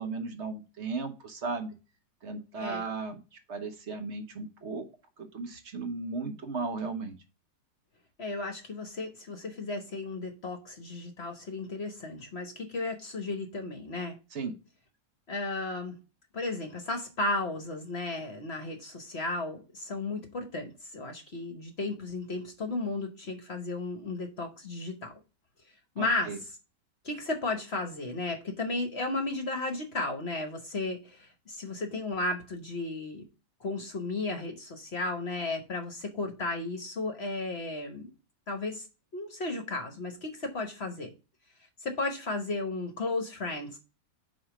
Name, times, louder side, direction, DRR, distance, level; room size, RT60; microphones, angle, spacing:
voice 1, 0.0-1.7 2.2-3.2 3.5-4.9 5.2-7.2 14.3-14.5 26.0-26.4, right 4 dB, 50° right, 1.1 m, -36 dB
voice 2, 8.2-14.2 15.3-16.0 16.3-25.1 25.9-26.3 27.0-33.2 33.6-38.1 38.5-38.9 39.1-41.1 41.8-43.8, left 2 dB, 45° left, 1.1 m, -34 dB
4.9 x 4.3 x 5.9 m
omnidirectional pair, 1.8 m